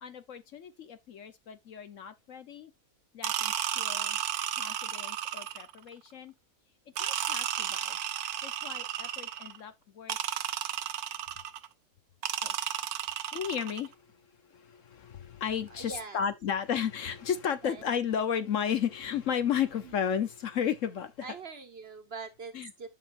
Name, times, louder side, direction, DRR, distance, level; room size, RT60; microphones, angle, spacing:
voice 1, 0.0-2.7 3.1-4.2 4.6-6.3 7.0-8.0 8.4-10.2 12.4-12.5 13.3-14.2 14.4-21.3 22.5-22.7, left 8 dB, 65° left, 1.2 m, -34 dB
sound 1, 3.2-5.8 7.0-9.6 10.1-11.7 12.2-13.9, right 10 dB, 85° right, 1.2 m, -33 dB
voice 2, 15.8-16.2 17.6-17.8 21.2-22.5 22.8-22.9, right 4 dB, 45° right, 1.3 m, -42 dB
11.0 x 6.1 x 2.5 m
omnidirectional pair, 1.5 m